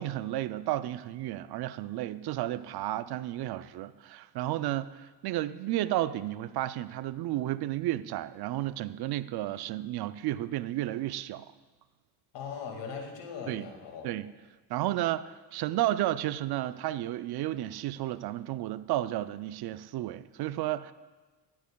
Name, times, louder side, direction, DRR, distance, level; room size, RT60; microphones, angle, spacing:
voice 1, 0.0-11.5 13.5-13.7 14.0-14.3 14.7-20.9, right 14 dB, 60° right, 15 dB, 0.5 m, -32 dB
voice 2, 12.3-14.1, left 6 dB, 75° left, 3 dB, 2.1 m, -40 dB
14.5 x 10.5 x 2.3 m, 1.3 s
cardioid pair, 90°, 44 cm